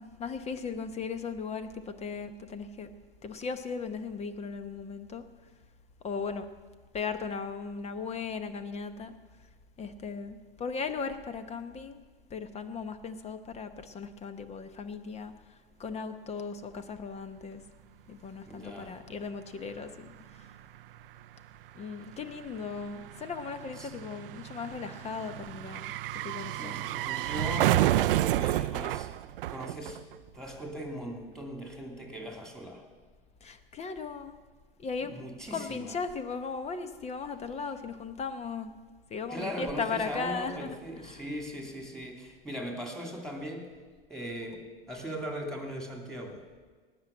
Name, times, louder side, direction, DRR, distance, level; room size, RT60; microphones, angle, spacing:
voice 1, 0.0-2.9 3.2-5.2 6.0-6.5 6.9-9.1 9.8-12.0 12.3-17.6 18.1-20.5 21.7-25.9 26.2-26.7 33.4-34.4 34.8-35.1 35.5-38.7 39.1-41.3, left 5 dB, 20° left, 10 dB, 0.9 m, -37 dB
voice 2, 18.5-18.9 23.8-23.9 26.6-29.1 29.5-30.0 30.3-32.8 35.0-36.0 39.3-43.7 44.1-46.4, equal, ahead, 1 dB, 2.8 m, -39 dB
sound 1, 19.7-19.8 20.0-30.4 30.6-30.7, right 15 dB, 70° right, 0.5 m, -31 dB
18.5 x 6.2 x 7.3 m, 1.4 s
hypercardioid pair, 105°, 29 cm